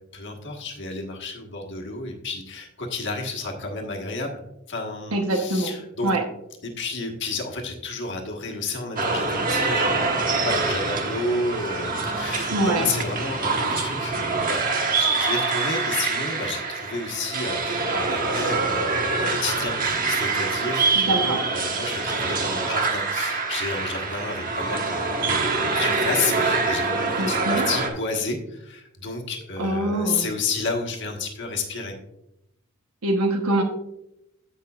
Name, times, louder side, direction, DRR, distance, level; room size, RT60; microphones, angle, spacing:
voice 1, 0.0-4.4 4.7-6.1 6.6-14.6 14.9-31.9, left 3 dB, 55° left, 2 dB, 1.4 m, -31 dB
voice 2, 5.1-5.7 6.0-6.2 12.5-12.9 21.0-21.4 27.2-27.7 29.6-30.2 33.0-33.6, right 1 dB, 85° right, 2 dB, 1.1 m, -24 dB
sound 1, 9.0-27.9, right 4 dB, 40° right, 1.2 m, -25 dB
16.0 x 5.6 x 2.4 m, 0.87 s
head